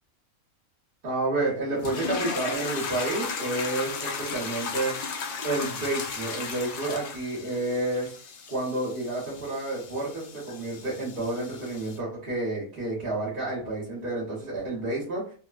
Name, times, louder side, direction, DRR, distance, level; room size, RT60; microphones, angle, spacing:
voice 1, 1.0-4.9 5.4-8.1 8.5-15.3, right 2 dB, 45° right, -6 dB, 1.0 m, -30 dB
sound 1, 1.8-12.0, left 5 dB, 70° left, 0.5 m, -35 dB
3.2 x 2.1 x 2.3 m, 0.41 s
omnidirectional pair, 1.5 m